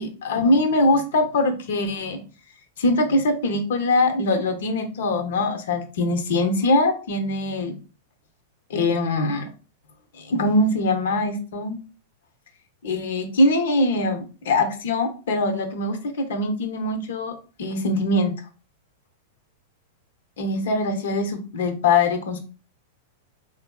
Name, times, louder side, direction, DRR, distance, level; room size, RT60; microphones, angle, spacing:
voice 1, 0.0-2.2 2.8-7.8 8.7-9.5 10.1-11.8 12.8-17.3 17.6-18.3 20.4-22.4, left 2 dB, 75° left, 6 dB, 0.7 m, -22 dB
3.4 x 2.5 x 2.3 m, 0.36 s
hypercardioid pair, 115°, 0 cm